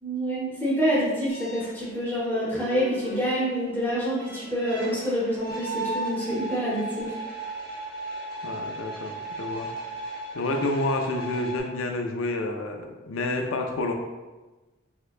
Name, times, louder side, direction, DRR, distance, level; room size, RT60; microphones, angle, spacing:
voice 1, 0.0-7.2, equal, 10° left, -8 dB, 0.7 m, -27 dB
sound 1, 1.3-11.6, right 1 dB, 45° left, 0.8 m, -36 dB
voice 2, 8.4-9.7 10.3-13.9, left 2 dB, 90° left, 4 dB, 0.4 m, -29 dB
3.2 x 2.9 x 2.4 m, 1.2 s
head